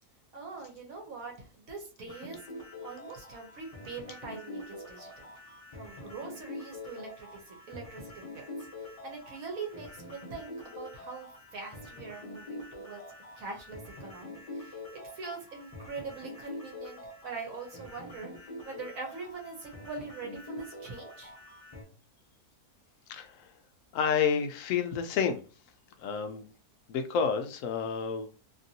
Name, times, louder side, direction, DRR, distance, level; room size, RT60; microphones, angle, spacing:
voice 1, 0.3-2.4 2.8-5.3 5.7-13.0 13.4-18.3 18.6-21.3, right 4 dB, 65° right, 1 dB, 1.2 m, -43 dB
sound 1, 2.1-21.8, left 2 dB, 30° left, 0.8 m, -45 dB
voice 2, 23.1-23.5 23.9-25.4 26.0-26.5 26.9-28.3, left 6 dB, 70° left, 6 dB, 0.9 m, -30 dB
2.9 x 2.6 x 2.7 m, 0.36 s
omnidirectional pair, 1.6 m